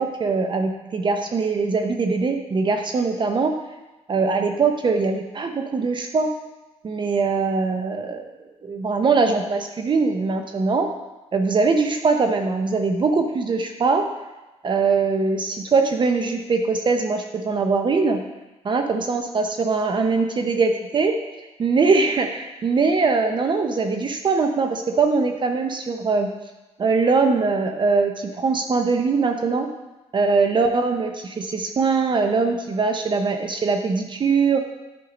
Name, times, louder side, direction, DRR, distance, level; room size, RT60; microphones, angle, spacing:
voice 1, 0.0-3.5 4.1-6.3 6.8-8.3 8.6-10.9 11.3-14.0 14.6-18.2 18.6-26.3 26.8-29.7 30.1-34.6, right 4 dB, 40° right, 5 dB, 0.6 m, -22 dB
10.0 x 4.7 x 5.0 m, 1.1 s
cardioid pair, 105°, 12 cm